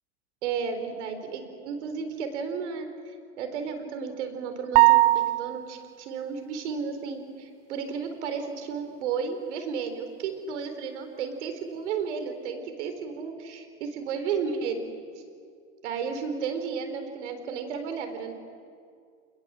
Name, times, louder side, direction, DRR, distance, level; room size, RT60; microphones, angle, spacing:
voice 1, 0.4-14.8 15.8-18.3, right 6 dB, 80° right, 7 dB, 4.1 m, -33 dB
sound 1, 4.7-5.8, right 19 dB, 60° right, 0.6 m, -19 dB
29.5 x 21.0 x 7.6 m, 2.2 s
supercardioid pair, 110°, 34 cm